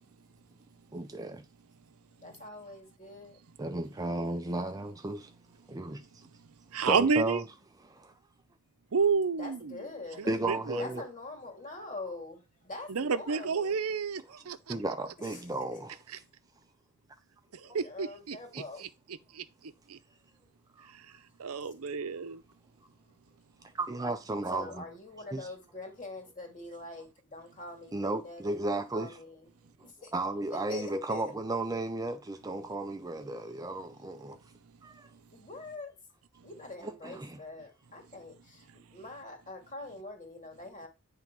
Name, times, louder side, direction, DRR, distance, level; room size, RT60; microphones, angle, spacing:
voice 1, 0.9-1.4 3.6-5.3 5.7-6.3 6.8-7.4 7.9-8.1 10.3-11.0 14.7-16.0 20.8-20.9 23.7-24.8 25.3-25.5 27.9-29.2 30.1-34.4 34.8-35.1 36.8-37.4, right 2 dB, 15° right, 0.5 m, -34 dB
voice 2, 2.2-3.4 9.4-10.3 10.8-13.8 15.2-15.4 17.5-18.9 24.5-28.6 28.9-29.5 29.8-30.1 30.5-31.2 35.3-35.9 36.4-40.9, left 2 dB, 35° left, 2.4 m, -44 dB
voice 3, 6.7-7.4 8.9-9.9 10.2-10.8 12.9-14.8 16.1-16.2 17.7-18.9 19.4-19.5 19.9-20.0 21.4-22.4, right 5 dB, 80° right, 0.6 m, -30 dB
9.5 x 3.5 x 6.0 m
head